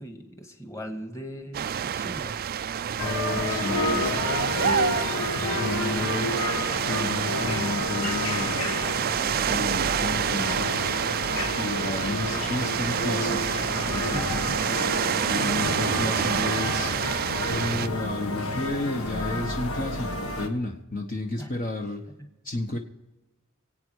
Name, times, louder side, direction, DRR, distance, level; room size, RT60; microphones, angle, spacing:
voice 1, 0.0-2.3 14.1-14.7 21.4-21.6 22.2-22.3, equal, 15° left, 4 dB, 1.8 m, -39 dB
sound 1, 1.5-17.9, right 8 dB, 45° right, 0.4 m, -28 dB
sound 2, 3.0-20.5, left 2 dB, 70° left, 1.7 m, -30 dB
voice 2, 3.5-4.3 4.6-5.0 5.6-6.4 6.9-8.8 9.5-11.0 11.6-13.4 13.9-14.5 15.3-17.0 17.5-22.0 22.4-22.8, left 2 dB, 40° left, 2 dB, 1.2 m, -32 dB
25.0 x 8.8 x 4.8 m, 1.0 s
head